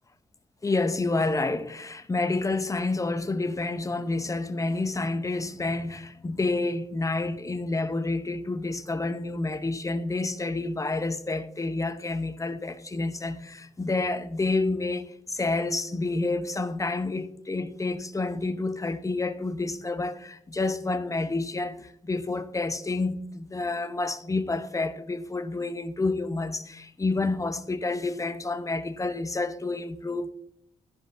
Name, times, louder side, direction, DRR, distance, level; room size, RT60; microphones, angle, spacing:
voice 1, 0.6-30.3, left 3 dB, 25° left, 0.6 m, -29 dB
12.5 x 5.2 x 2.6 m
cardioid pair, 65°, 14 cm